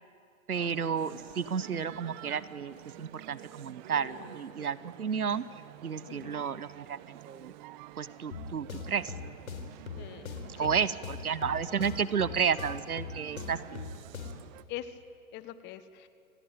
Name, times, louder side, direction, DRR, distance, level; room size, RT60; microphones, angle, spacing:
Male speech man speaking, 0.5-14.6, right 14 dB, 35° right, 0.9 m, -49 dB
voice 1, 0.5-5.4 5.8-7.5 8.0-9.1 10.6-13.6, right 7 dB, 90° right, 17 dB, 1.1 m, -32 dB
voice 2, 3.9-4.4 6.1-6.4 10.0-10.7 14.7-15.0 15.3-16.1, left 12 dB, 25° left, 12 dB, 1.3 m, -44 dB
sound 1, 8.3-14.5, left 5 dB, 70° left, 4.0 m, -42 dB
27.5 x 18.0 x 9.0 m, 2.3 s
hypercardioid pair, 125°, 43 cm